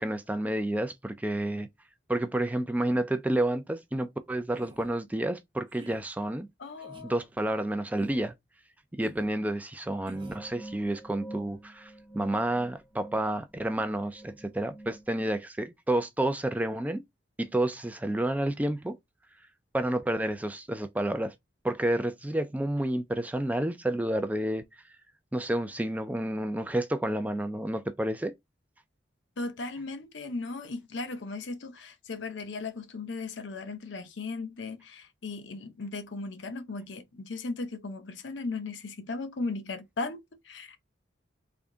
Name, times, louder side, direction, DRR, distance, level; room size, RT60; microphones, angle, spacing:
voice 1, 0.0-1.7 2.1-6.5 7.0-8.3 8.9-17.0 17.4-19.0 19.7-21.3 21.6-24.6 25.3-28.3, right 1 dB, 10° right, 0.3 m, -30 dB
sound 1, 4.5-4.9 5.7-6.0 6.8-7.1 8.0-8.3 9.0-9.3 10.1-10.5, right 1 dB, 25° right, 0.9 m, -48 dB
voice 2, 6.6-7.1 29.4-40.8, left 3 dB, 70° left, 0.7 m, -37 dB
sound 2, 10.1-15.4, right 1 dB, 30° left, 1.5 m, -47 dB
3.5 x 2.6 x 3.6 m
head